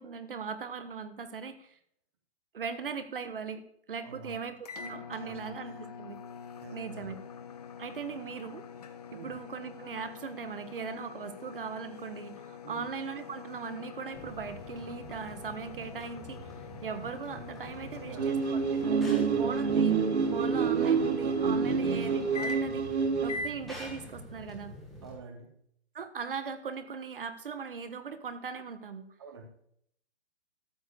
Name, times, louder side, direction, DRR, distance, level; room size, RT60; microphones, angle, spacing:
voice 1, 0.0-1.8 2.5-6.2 6.7-7.2 7.8-8.6 9.1-16.5 16.8-18.9 19.4-20.0 20.3-22.9 23.2-24.7 25.9-29.1, right 6 dB, 55° right, 11 dB, 1.1 m, -39 dB
voice 2, 4.0-4.4 5.2-5.4 5.7-5.9 6.6-7.1 9.1-9.3 12.6-12.9 17.8-18.5 19.1-19.5 21.7-22.0 23.3-23.5 25.0-25.6 29.2-29.4, right 3 dB, 25° right, 6 dB, 1.0 m, -47 dB
sound 1, 4.6-22.9 23.3-23.6, left 5 dB, 35° left, 1.0 m, -44 dB
sound 2, 14.1-25.1, equal, ahead, 1.2 m, -47 dB
sound 3, 18.2-23.4, right 5 dB, 75° right, 1.1 m, -27 dB
13.0 x 4.5 x 8.2 m, 0.69 s
hypercardioid pair, 180°, 33 cm